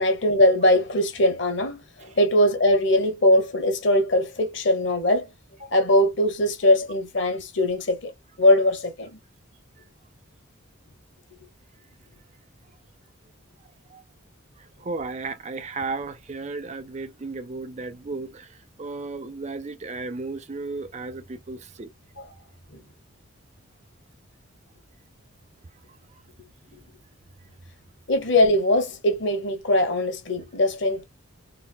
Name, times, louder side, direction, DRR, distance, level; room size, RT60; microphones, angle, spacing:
voice 1, 0.0-5.3 5.6-8.1 8.4-9.2 22.2-22.3 22.7-22.8 28.1-31.0, left 1 dB, 55° left, 1.0 m, -21 dB
voice 2, 14.6-21.9, right 3 dB, 30° right, 0.4 m, -34 dB
4.0 x 2.1 x 2.2 m
head